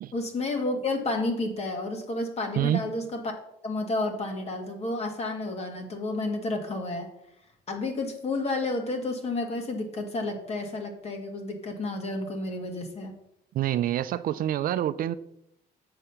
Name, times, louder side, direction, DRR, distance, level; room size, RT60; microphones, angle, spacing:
voice 1, 0.1-3.3 3.6-7.1 7.7-13.1, left 2 dB, 40° left, 2.0 m, -31 dB
voice 2, 13.5-15.1, right 12 dB, 55° right, 0.5 m, -26 dB
7.8 x 6.4 x 5.7 m
cardioid pair, 110°, 17 cm